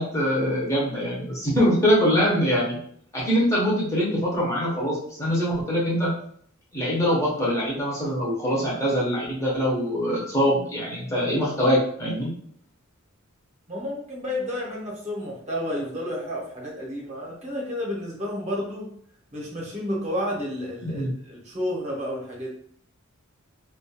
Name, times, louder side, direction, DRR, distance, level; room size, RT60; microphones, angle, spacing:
voice 1, 0.0-2.8 3.1-6.1 6.7-12.3 20.8-21.1, equal, 15° left, -6 dB, 0.6 m, -23 dB
voice 2, 13.7-18.9 19.3-22.5, left 1 dB, 30° right, -3 dB, 0.7 m, -31 dB
2.3 x 2.3 x 2.7 m, 0.62 s
head